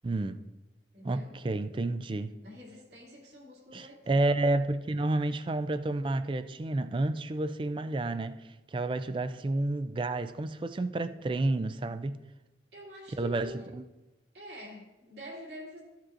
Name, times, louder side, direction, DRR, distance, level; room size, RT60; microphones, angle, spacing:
voice 1, 0.0-0.4 1.0-2.3 3.7-8.4 8.7-12.2 13.2-13.8, right 2 dB, 25° right, 0.3 m, -30 dB
voice 2, 0.9-1.4 2.4-4.2 12.7-13.7 14.3-15.8, left 1 dB, 70° right, 2.4 m, -46 dB
14.5 x 7.3 x 2.5 m
head